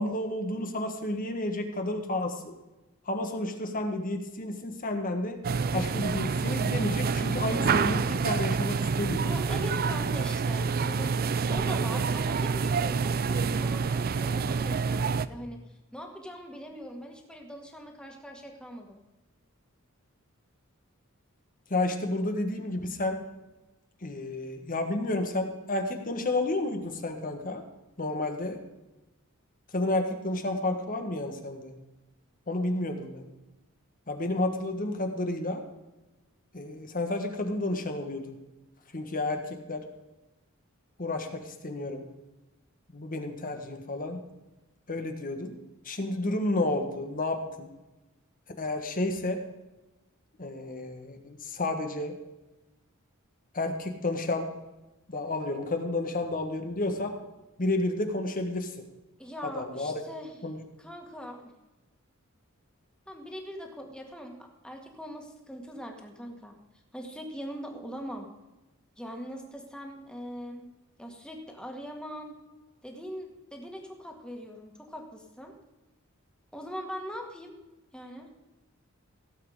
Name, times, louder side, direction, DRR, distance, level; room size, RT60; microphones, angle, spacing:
voice 1, 0.0-2.5 3.1-5.4 5.7-9.2 21.7-23.2 24.0-27.6 28.0-28.6 29.7-31.7 32.5-33.2 34.1-35.6 36.5-38.3 38.9-39.4 39.7-39.8 41.0-42.1 42.9-44.2 44.9-45.6 45.8-47.7 48.6-49.4 50.4-52.1 53.5-54.5 55.1-57.1 57.6-58.7 59.5-59.9 60.4-60.6, left 2 dB, 40° left, 5 dB, 1.6 m, -31 dB
sound 1, 5.4-15.3, right 5 dB, 45° right, 0.5 m, -27 dB
voice 2, 9.2-11.1 11.5-15.6 15.9-19.0 59.2-60.4 60.8-61.5 63.1-66.6 66.9-68.3 69.0-70.7 71.0-72.4 72.8-75.5 76.5-77.6 77.9-78.3, equal, 5° left, 2 dB, 2.0 m, -41 dB
16.5 x 7.8 x 5.0 m, 1.0 s
head